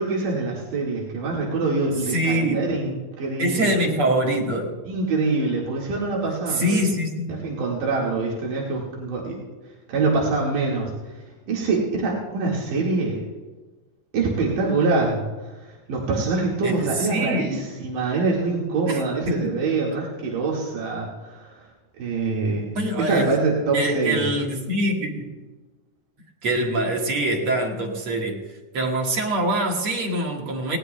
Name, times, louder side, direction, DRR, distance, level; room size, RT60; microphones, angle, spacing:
voice 1, 0.0-3.7 4.9-6.8 7.3-9.4 9.9-10.9 11.5-13.2 14.1-21.6 22.0-22.7 23.0-24.3, right 3 dB, 90° right, -4 dB, 3.5 m, -25 dB
voice 2, 2.1-2.6 3.4-4.8 6.5-7.4 16.6-17.6 18.9-19.6 22.8-23.3 23.7-25.3 26.4-28.5 28.7-30.8, right 1 dB, 50° right, 1 dB, 2.2 m, -24 dB
19.5 x 18.5 x 2.2 m, 1.2 s
omnidirectional pair, 3.7 m